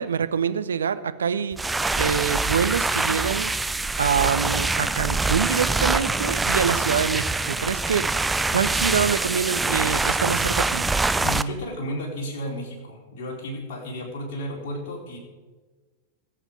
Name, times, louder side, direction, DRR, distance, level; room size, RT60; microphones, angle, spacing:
voice 1, 0.0-1.6 2.0-3.5 4.0-8.1 8.5-10.9, right 7 dB, 70° right, 13 dB, 0.6 m, -25 dB
sound 1, 1.5-11.4, right 3 dB, 10° right, 0.5 m, -24 dB
voice 2, 11.2-15.2, equal, 50° left, -2 dB, 4.1 m, -33 dB
21.0 x 7.5 x 5.0 m, 1.3 s
figure-of-eight pair, 90°, 0 cm